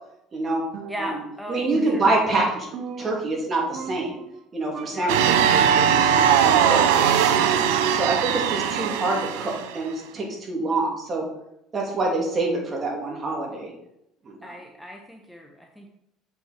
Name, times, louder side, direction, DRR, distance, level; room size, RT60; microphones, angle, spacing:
voice 1, 0.3-0.6 1.0-1.1 1.5-2.7 3.0-4.2 4.5-7.5 7.9-11.2 11.7-13.7 14.2-14.6, right 2 dB, 35° right, -1 dB, 2.9 m, -26 dB
Percussion, 0.7-1.4 1.7-3.5 3.7-4.4 4.7-5.2 5.7-7.3 7.7-8.4, right 6 dB, 60° right, 0.9 m, -39 dB
voice 2, 0.9-2.0 4.9-5.2 8.1-8.6 14.4-15.9, equal, ahead, 1 dB, 1.1 m, -38 dB
sound 1, 5.1-9.8, right 8 dB, 85° right, 0.6 m, -20 dB
7.4 x 5.9 x 4.5 m, 0.80 s
supercardioid pair, 95°, 0 cm